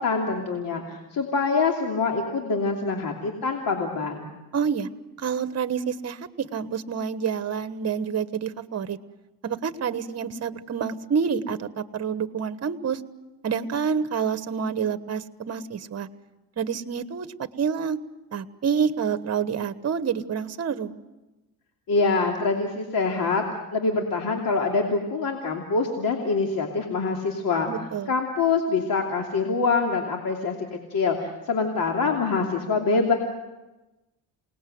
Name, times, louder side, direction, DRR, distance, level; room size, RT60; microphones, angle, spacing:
voice 1, 0.0-4.3 21.9-23.4 23.7-27.7 28.1-33.1, left 4 dB, 60° left, 1 dB, 2.9 m, -25 dB
voice 2, 4.5-4.9 5.2-9.0 9.4-13.0 13.4-16.1 16.6-18.0 18.3-21.0 27.7-28.1, right 6 dB, 40° right, 12 dB, 1.4 m, -28 dB
28.0 x 19.5 x 7.9 m, 1.1 s
cardioid pair, 100°, 39 cm